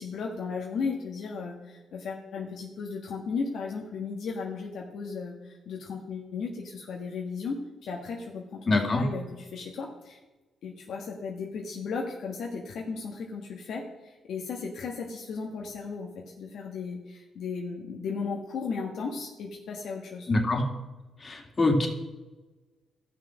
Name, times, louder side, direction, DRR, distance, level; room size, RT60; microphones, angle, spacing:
voice 1, 0.0-9.2 9.5-10.2 10.6-20.3, left 5 dB, 70° left, 0 dB, 1.3 m, -35 dB
voice 2, 8.7-9.0 20.3-20.7 21.2-21.9, left 2 dB, 35° left, 2 dB, 2.3 m, -24 dB
12.5 x 6.1 x 6.2 m, 1.2 s
supercardioid pair, 60°, 0 cm